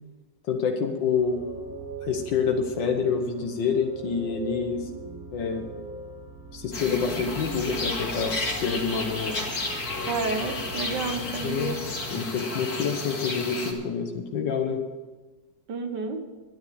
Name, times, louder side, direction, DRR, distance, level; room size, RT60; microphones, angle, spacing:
voice 1, 0.5-1.4 2.0-4.9 5.3-5.6 6.5-9.5 11.4-11.8 12.1-14.8, left 6 dB, 75° left, 3 dB, 1.8 m, -27 dB
sound 1, 1.1-12.1, right 2 dB, 50° right, 2.7 m, -40 dB
sound 2, 6.7-13.7, left 3 dB, 55° left, 2.5 m, -32 dB
voice 2, 10.1-11.8 15.7-16.2, right 3 dB, 70° right, 5 dB, 1.9 m, -30 dB
11.5 x 9.6 x 7.0 m, 1.3 s
omnidirectional pair, 2.0 m